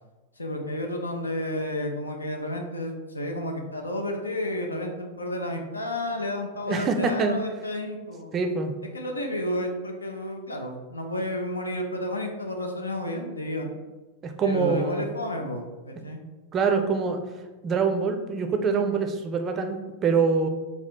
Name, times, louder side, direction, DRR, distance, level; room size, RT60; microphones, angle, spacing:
voice 1, 0.4-8.4 8.9-13.7 14.4-16.2, left 1 dB, 80° left, 2 dB, 0.5 m, -31 dB
voice 2, 6.7-7.4 8.3-8.7 14.2-15.1 16.5-17.2 17.6-20.5, right 5 dB, 25° right, 5 dB, 0.4 m, -25 dB
3.4 x 2.3 x 4.2 m, 1.2 s
figure-of-eight pair, 90°, 0 cm